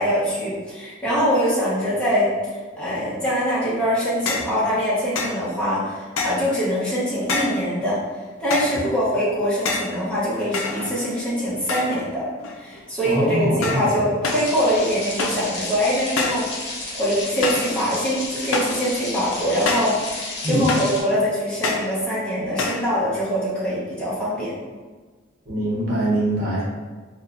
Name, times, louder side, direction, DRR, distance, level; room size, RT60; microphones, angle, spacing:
voice 1, 0.0-2.3 2.8-8.0 8.4-12.2 12.6-24.6, equal, 5° left, -10 dB, 1.0 m, -23 dB
sound 1, 4.3-4.6 5.1-5.4 6.2-6.5 7.3-7.7 8.5-8.8 9.6-10.0 10.5-11.2 11.7-12.1 12.4-12.8 13.6-13.9 14.2-14.5 15.2-15.5 16.2-16.5 17.4-17.7 18.5-18.8 19.7-20.0 20.7-21.0 21.6-21.9 22.6-22.9, left 3 dB, 85° left, 0.4 m, -26 dB
voice 2, 13.0-13.8 20.4-20.7 25.5-26.6, right 1 dB, 50° right, -7 dB, 1.1 m, -22 dB
sound 2, 14.2-21.0, left 2 dB, 55° left, 0.9 m, -32 dB
4.1 x 2.3 x 2.4 m, 1.4 s
head